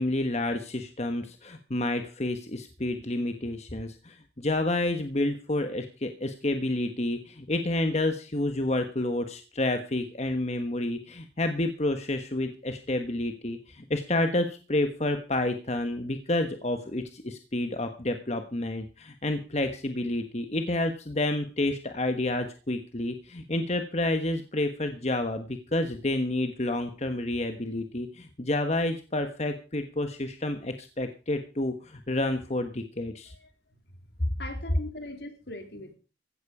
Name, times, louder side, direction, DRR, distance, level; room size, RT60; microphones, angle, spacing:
voice 1, 0.0-33.3, left 1 dB, 40° left, 7 dB, 1.3 m, -29 dB
voice 2, 33.3-33.8 34.4-35.9, left 2 dB, 70° left, 6 dB, 3.1 m, -41 dB
15.5 x 12.5 x 4.9 m, 0.35 s
head